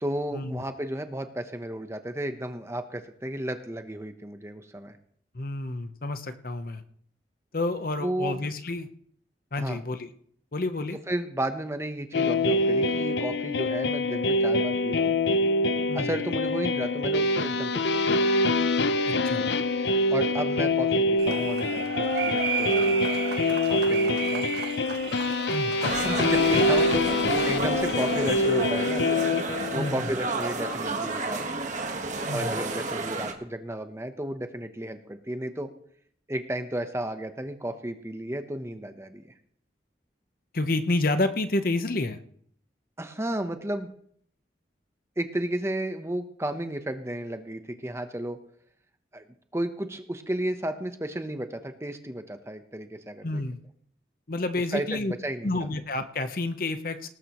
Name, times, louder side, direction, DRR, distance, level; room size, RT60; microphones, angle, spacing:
voice 1, 0.0-5.0 8.0-8.4 9.6-9.8 11.1-15.2 15.9-18.3 20.1-23.0 23.7-24.5 25.8-29.1 29.7-31.5 32.3-35.7 36.3-39.3 43.0-43.9 45.2-48.4 49.1-49.2 49.5-53.3 54.7-55.5, right 1 dB, 15° right, 7 dB, 0.9 m, -33 dB
voice 2, 5.3-6.8 7.5-8.9 9.5-10.1 10.5-11.0 15.9-16.1 19.1-19.4 25.5-25.7 29.7-30.0 32.3-32.5 40.5-42.2 53.2-53.6 54.3-55.1 55.4-57.1, left 2 dB, 50° left, 9 dB, 0.9 m, -29 dB
sound 1, 12.1-29.9, left 2 dB, 80° left, 0.7 m, -25 dB
sound 2, 21.2-27.1, right 5 dB, 70° right, 1.6 m, -33 dB
sound 3, 25.8-33.3, right 3 dB, 45° right, 1.5 m, -31 dB
18.5 x 13.5 x 3.1 m, 0.63 s
head